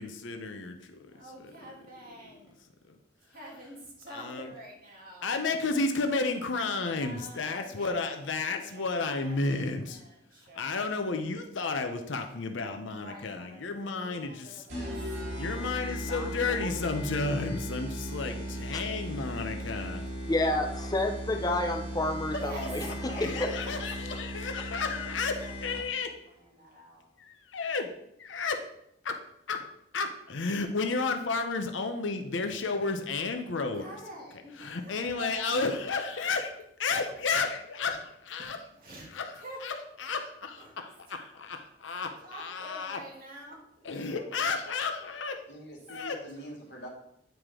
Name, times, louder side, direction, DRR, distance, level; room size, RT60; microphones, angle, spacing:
voice 1, 0.0-1.1 1.4-1.5 4.1-4.5 5.2-10.0 10.5-14.6 15.4-20.0 23.2-26.1 27.2-27.9 28.2-28.6 29.0-29.2 29.5-29.6 29.9-33.9 34.6-36.5 36.8-38.0 38.3-38.6 39.1-39.3 39.6-43.0 43.8-45.4 45.9-46.2, left 4 dB, 85° left, 5 dB, 0.7 m, -32 dB
voice 2, 1.0-2.5 3.3-5.4 6.8-8.2 8.5-10.9 12.9-15.7 19.9-21.0 22.4-22.7 23.1-24.2 24.8-25.8 26.2-27.1 33.8-35.5 36.0-36.2 38.4-38.5 38.8-39.9 40.6-40.8 41.1-41.3 42.2-44.5 46.3-46.5, equal, 50° right, -4 dB, 2.6 m, -48 dB
sound 1, 14.7-26.1, equal, 85° right, 2.5 m, -37 dB
voice 3, 16.0-17.5 22.3-23.5 24.1-24.2 24.5-24.9 45.5-46.9, left 1 dB, 65° left, -1 dB, 1.9 m, -42 dB
voice 4, 20.3-22.8 23.2-23.3, left 2 dB, 20° left, 4 dB, 0.6 m, -29 dB
9.1 x 4.9 x 3.7 m, 0.76 s
head